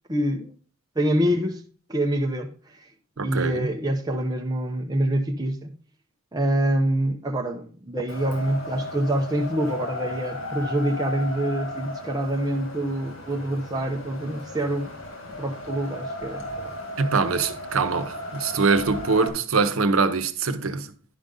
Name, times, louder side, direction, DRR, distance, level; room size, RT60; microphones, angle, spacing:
voice 1, 0.1-0.5 1.0-1.6 1.9-2.9 3.2-5.7 6.3-14.9 15.4-16.7, right 1 dB, 20° right, 0.7 m, -26 dB
voice 2, 3.2-3.7 17.0-20.9, right 4 dB, 85° right, 0.8 m, -23 dB
Wind, 8.1-19.3, left 1 dB, 85° left, 2.1 m, -35 dB
10.5 x 5.2 x 3.8 m
head